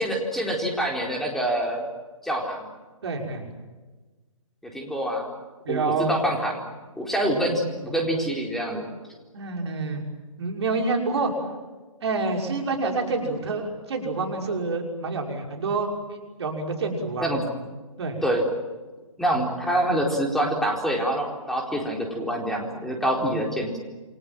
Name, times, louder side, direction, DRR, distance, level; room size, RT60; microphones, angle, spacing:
voice 1, 0.0-1.8 2.2-2.7 4.7-5.3 5.7-6.6 7.0-8.9 17.2-17.4 18.2-18.4 19.2-23.8, right 1 dB, ahead, 0 dB, 4.2 m, -26 dB
voice 2, 3.0-3.5 5.6-6.2 9.3-10.0 10.4-11.3 12.0-17.3 18.0-18.2 23.1-23.4, right 3 dB, 50° right, 2 dB, 6.0 m, -28 dB
29.0 x 23.5 x 7.7 m, 1.3 s
figure-of-eight pair, 135°, 18 cm